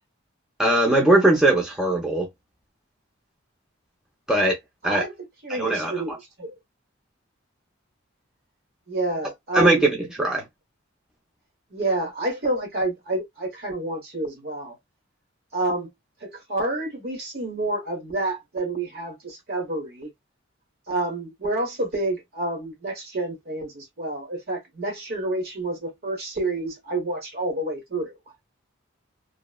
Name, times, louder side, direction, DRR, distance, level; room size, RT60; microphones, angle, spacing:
voice 1, 0.6-2.3 4.3-4.6 4.8-5.0 5.5-6.2 9.5-10.4, right 1 dB, 5° right, 0.6 m, -20 dB
voice 2, 5.4-6.6 8.9-9.9 10.2-10.3 11.7-14.8 15.5-15.9 16.2-20.1 20.9-28.1, right 2 dB, 50° right, 1.1 m, -29 dB
2.9 x 2.1 x 2.3 m
head